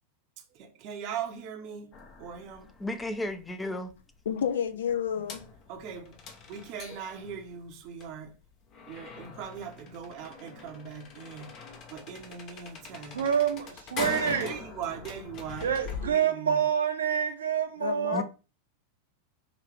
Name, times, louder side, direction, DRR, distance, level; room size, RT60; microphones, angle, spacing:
voice 1, 0.6-1.9 2.2-2.7 5.7-6.2 6.5-8.3 8.9-11.5 11.9-13.2 14.2-15.7 16.0-16.5, right 7 dB, 40° right, 0.9 m, -40 dB
sound 1, 1.9-16.1, left 4 dB, 35° left, 0.9 m, -43 dB
voice 2, 2.8-3.9 18.1-18.2, left 1 dB, 10° left, 0.7 m, -33 dB
voice 3, 4.3-5.5 17.8-18.2, left 8 dB, 60° left, 0.6 m, -30 dB
voice 4, 13.1-14.5 15.6-18.2, right 8 dB, 70° right, 0.9 m, -27 dB
5.0 x 2.8 x 3.3 m
figure-of-eight pair, 90°, 0 cm